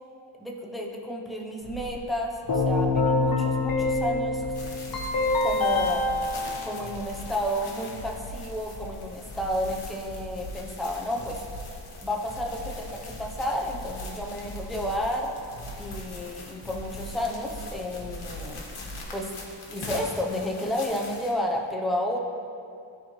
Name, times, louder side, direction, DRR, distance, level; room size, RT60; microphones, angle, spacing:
voice 1, 0.4-4.5 5.4-6.0 6.6-11.4 12.0-15.3 15.8-18.6 19.1-19.4 19.7-22.2, equal, ahead, -1 dB, 0.6 m, -31 dB
sound 1, 1.6-19.1, equal, 20° left, 1.5 m, -42 dB
Keyboard (musical), 2.5-7.5, left 3 dB, 45° left, 1.0 m, -26 dB
sound 2, 4.5-21.3, left 2 dB, 75° left, 1.4 m, -44 dB
13.0 x 4.4 x 3.1 m, 2.5 s
wide cardioid pair, 145°, 49 cm